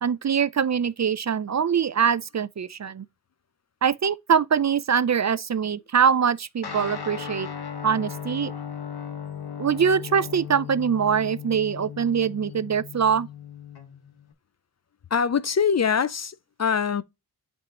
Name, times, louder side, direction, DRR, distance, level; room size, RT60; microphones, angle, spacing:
voice 1, 0.0-3.1 3.8-7.5 7.8-8.5 9.6-13.3, right 7 dB, 45° right, 0.5 m, -23 dB
Guitar, 6.6-14.3, left 7 dB, 70° left, 1.3 m, -37 dB
voice 2, 15.1-17.0, left 6 dB, 45° left, 0.5 m, -23 dB
7.8 x 4.6 x 2.9 m
wide cardioid pair, 70°, 39 cm